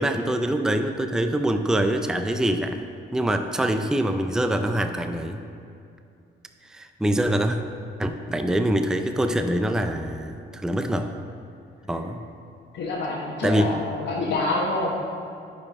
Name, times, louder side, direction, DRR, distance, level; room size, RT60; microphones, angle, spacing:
voice 1, 0.0-2.8 3.1-5.4 6.7-7.6 8.0-10.4 10.6-11.1 11.9-12.2 13.4-13.7, right 1 dB, 5° right, 7 dB, 0.4 m, -24 dB
voice 2, 12.7-15.0, left 2 dB, 70° left, -5 dB, 1.1 m, -27 dB
10.5 x 4.9 x 3.6 m, 2.5 s
cardioid pair, 90°, 20 cm